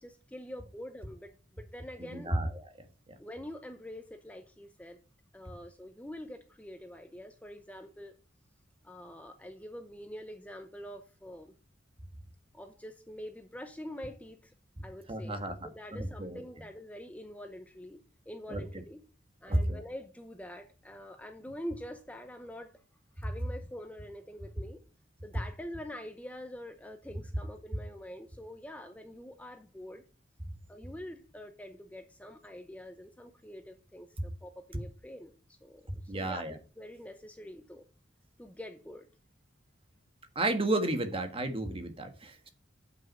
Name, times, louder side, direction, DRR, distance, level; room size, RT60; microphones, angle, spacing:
voice 1, 0.0-2.4 3.2-5.0 5.3-8.1 8.8-11.5 12.5-14.5 14.8-18.0 18.3-19.0 19.4-22.8 23.2-24.8 25.2-30.0 30.7-36.5 36.8-37.8 38.4-39.1, equal, 10° left, 6 dB, 0.7 m, -45 dB
voice 2, 2.0-2.5 15.1-15.5 15.9-16.4 18.5-18.6 19.5-19.8 36.1-36.5 40.3-42.5, right 1 dB, 30° right, 7 dB, 1.4 m, -31 dB
8.0 x 6.1 x 5.5 m, 0.36 s
head